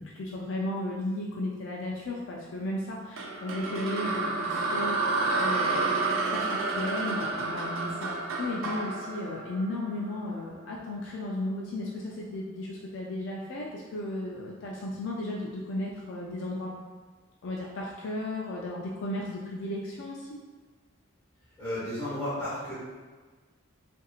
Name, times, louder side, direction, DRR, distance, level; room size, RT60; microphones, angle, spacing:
voice 1, 0.0-16.7 17.4-20.3, left 1 dB, 65° left, -3 dB, 0.3 m, -35 dB
sound 1, 3.2-10.3, right 3 dB, 75° right, 0.3 m, -30 dB
voice 2, 21.6-22.7, left 1 dB, 15° left, -11 dB, 1.3 m, -33 dB
2.9 x 2.5 x 2.3 m, 1.4 s
head